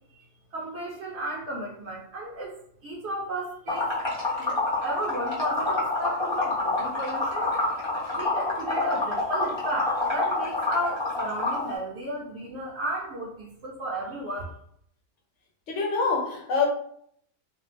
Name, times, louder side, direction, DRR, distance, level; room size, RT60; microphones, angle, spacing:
voice 1, 0.5-2.5 2.8-3.9 4.4-7.5 8.1-14.5, right 1 dB, 65° right, -3 dB, 0.8 m, -34 dB
Liquid, 3.7-11.7, left 2 dB, 25° left, 0.6 m, -27 dB
voice 2, 15.7-16.7, left 4 dB, 70° left, 1 dB, 0.9 m, -25 dB
2.5 x 2.1 x 3.2 m, 0.67 s
omnidirectional pair, 1.4 m